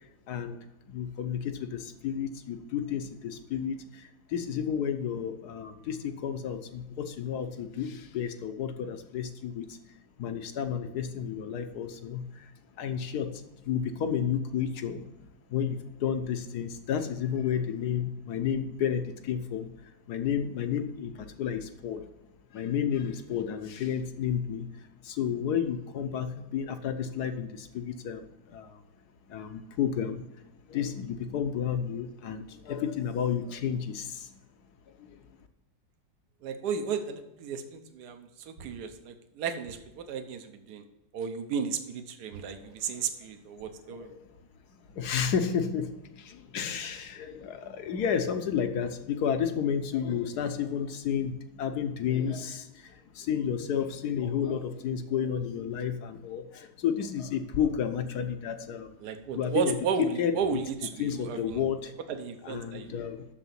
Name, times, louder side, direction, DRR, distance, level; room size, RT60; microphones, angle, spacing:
voice 1, 0.3-0.6 0.9-9.8 10.2-12.5 12.8-15.0 15.5-22.0 22.5-28.8 29.3-30.2 30.7-34.4 35.0-35.2 42.6-42.7 43.8-44.3 44.7-58.9 59.3-59.8 60.2-60.3 61.0-61.9 62.4-63.3, left 8 dB, 65° left, 8 dB, 1.3 m, -31 dB
voice 2, 36.4-40.8 41.1-44.1 59.0-61.6 62.1-62.9, right 6 dB, 65° right, 7 dB, 1.4 m, -34 dB
7.0 x 6.6 x 7.4 m, 0.97 s
omnidirectional pair, 2.0 m